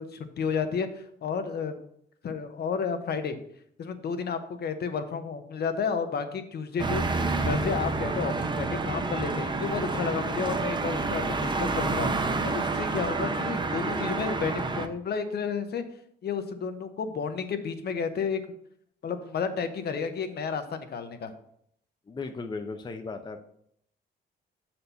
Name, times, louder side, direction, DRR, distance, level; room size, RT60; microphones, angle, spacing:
voice 1, 0.0-1.8 2.2-3.4 3.8-12.1 12.4-15.8 16.2-18.4 19.0-21.4, left 6 dB, 55° left, 8 dB, 0.9 m, -31 dB
sound 1, 6.8-14.9, right 3 dB, 25° right, 0.7 m, -29 dB
voice 2, 22.1-23.4, left 4 dB, 20° left, 6 dB, 0.5 m, -36 dB
6.6 x 4.3 x 5.5 m, 0.70 s
cardioid pair, 90°, 20 cm